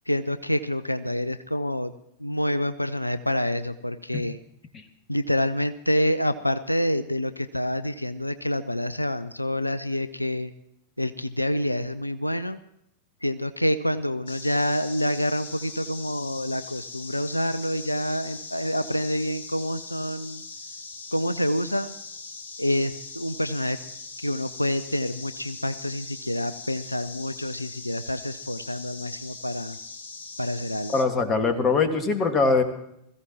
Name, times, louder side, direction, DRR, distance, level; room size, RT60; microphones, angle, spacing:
voice 1, 0.1-1.9 2.2-4.4 5.1-10.5 11.0-12.6 13.2-20.4 21.1-21.9 22.6-23.8 24.2-29.8 30.4-31.0, equal, 85° left, 13 dB, 0.4 m, -27 dB
sound 1, 14.3-31.0, left 4 dB, 60° left, 1.5 m, -41 dB
voice 2, 30.9-32.6, left 4 dB, 25° left, 7 dB, 1.8 m, -22 dB
21.0 x 15.0 x 3.0 m, 0.76 s
figure-of-eight pair, 90°, 0 cm